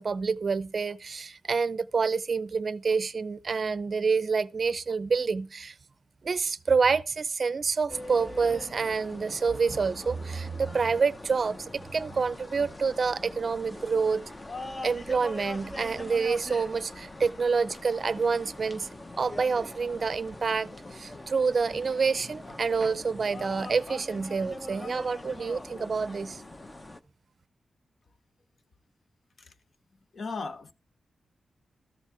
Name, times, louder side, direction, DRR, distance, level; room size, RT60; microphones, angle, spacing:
voice 1, 0.0-5.7 6.2-14.2 14.8-18.9 19.2-26.4, right 5 dB, 50° right, 0.5 m, -28 dB
sound 1, 7.9-27.0, left 2 dB, 25° left, 0.8 m, -42 dB
voice 2, 30.1-30.7, left 4 dB, 55° left, 0.9 m, -35 dB
13.5 x 7.3 x 4.9 m
wide cardioid pair, 105°, 0 cm